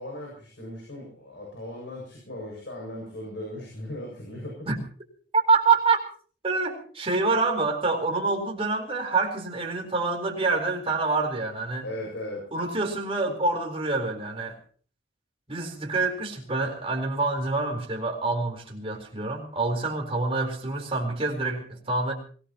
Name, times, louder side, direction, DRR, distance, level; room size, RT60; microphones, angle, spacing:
voice 1, 0.0-4.7 11.8-12.4, left 1 dB, 70° left, -1 dB, 7.1 m, -37 dB
voice 2, 5.3-6.0 6.4-11.8 12.5-14.6 15.5-22.1, right 3 dB, 30° right, 1 dB, 4.2 m, -26 dB
25.0 x 18.0 x 3.0 m, 0.43 s
head